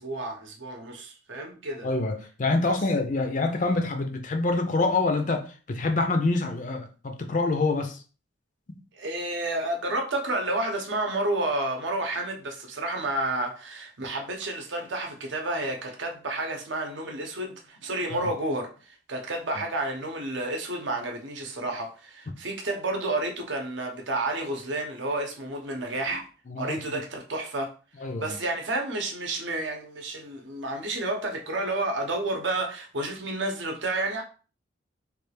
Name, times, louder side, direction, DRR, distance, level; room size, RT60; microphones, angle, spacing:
voice 1, 0.0-1.9 2.6-2.8 8.9-26.3 26.6-27.7 28.0-34.2, right 2 dB, 65° right, 0.8 m, -30 dB
voice 2, 1.8-8.0 8.7-8.8 18.1-18.3 26.5-26.8 28.0-28.3, left 3 dB, 40° left, 0.5 m, -26 dB
3.2 x 2.3 x 3.3 m
head